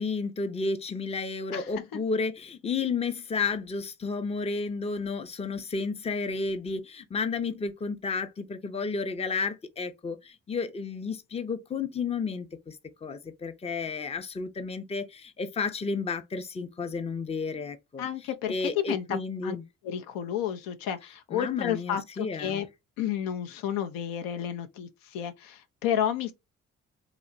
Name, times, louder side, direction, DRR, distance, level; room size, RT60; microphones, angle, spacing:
voice 1, 0.0-18.1 18.5-19.6 21.3-22.7, left 4 dB, 20° left, 0.5 m, -32 dB
voice 2, 18.0-19.6 19.8-22.7 23.0-26.3, left 10 dB, 80° left, 0.5 m, -31 dB
2.8 x 2.1 x 2.5 m
hypercardioid pair, 50°, 34 cm